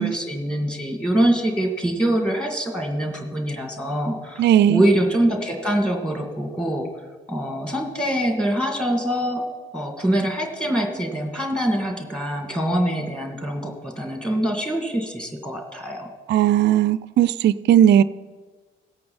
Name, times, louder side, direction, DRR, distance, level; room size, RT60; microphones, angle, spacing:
voice 1, 0.0-6.9 7.3-9.5 9.7-16.1, right 1 dB, 5° left, 2 dB, 2.5 m, -24 dB
voice 2, 4.4-4.8 16.3-18.0, right 10 dB, 40° right, 17 dB, 0.4 m, -17 dB
17.0 x 8.4 x 4.4 m, 1.4 s
figure-of-eight pair, 40°, 29 cm